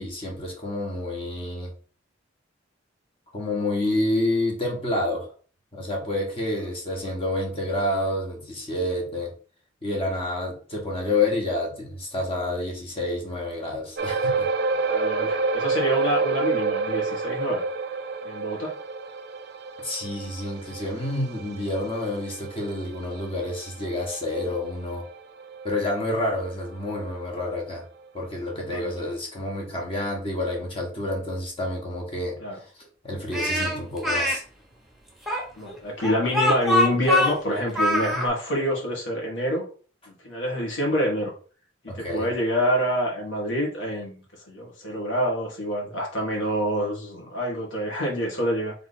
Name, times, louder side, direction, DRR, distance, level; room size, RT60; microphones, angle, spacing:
voice 1, 0.0-1.7 3.3-5.3 5.7-9.3 9.8-14.5 19.8-25.0 25.6-27.8 28.1-32.4 33.0-34.4 41.9-42.3, left 1 dB, 30° left, 1.3 m, -28 dB
sound 1, 14.0-26.7 27.0-27.2 27.7-27.8, right 4 dB, 55° right, 0.5 m, -29 dB
voice 2, 14.9-17.6 18.2-18.7 28.6-29.0 32.4-32.6 35.6-39.6 40.2-41.3 41.8-44.2 44.5-48.7, equal, 80° left, 1.7 m, -26 dB
Speech, 33.3-34.4 35.3-38.3, left 1 dB, ahead, 1.1 m, -23 dB
3.4 x 3.4 x 4.1 m
head